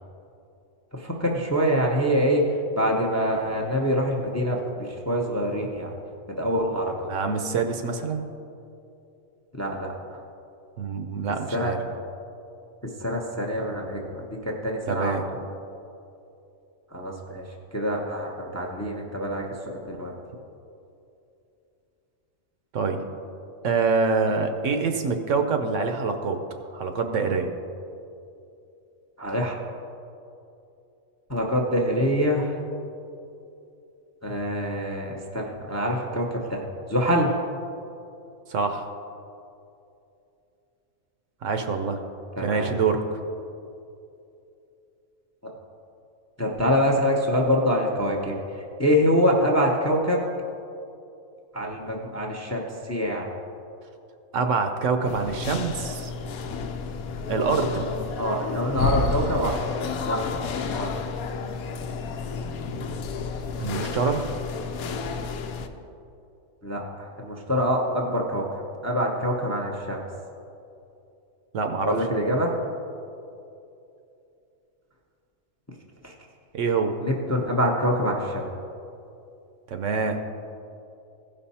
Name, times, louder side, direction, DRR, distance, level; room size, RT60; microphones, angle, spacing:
voice 1, 0.9-2.4 2.8-5.9 6.4-6.9 9.5-9.9 11.5-11.7 13.0-15.2 16.9-17.4 17.7-20.1 29.2-29.5 31.3-32.5 34.2-36.6 36.9-37.3 42.4-42.8 46.4-48.4 48.8-50.2 51.5-53.3 58.2-59.5 60.0-60.9 66.6-68.4 68.8-70.0 71.8-72.6 76.0-76.1 77.0-78.5, equal, 15° left, 0 dB, 0.6 m, -25 dB
voice 2, 7.1-8.3 10.8-11.8 14.9-15.2 22.7-23.0 23.6-26.4 26.7-27.5 38.5-38.9 41.4-42.0 42.4-43.2 54.3-56.1 57.3-58.0 63.6-64.2 71.5-72.0 76.5-76.9 79.7-80.2, right 4 dB, 65° right, 6 dB, 1.0 m, -25 dB
sound 1, 55.1-65.7, left 4 dB, 85° left, 1.1 m, -31 dB
16.0 x 5.4 x 4.2 m, 2.7 s
omnidirectional pair, 1.5 m